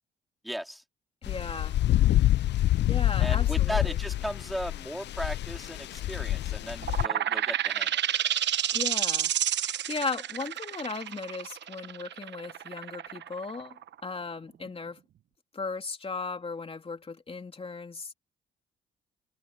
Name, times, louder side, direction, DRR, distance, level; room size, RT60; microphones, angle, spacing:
voice 1, 0.4-0.8 3.2-8.0, equal, ahead, 4.1 m, -36 dB
sound 1, 1.2-7.1, left 13 dB, 60° left, 0.5 m, -26 dB
voice 2, 1.2-1.8 2.9-4.0 8.7-9.3 9.6-15.0 15.5-18.1, left 4 dB, 30° left, 3.1 m, -37 dB
sound 2, 6.8-14.2, right 10 dB, 65° right, 1.1 m, -30 dB
cardioid pair, 90°, 20 cm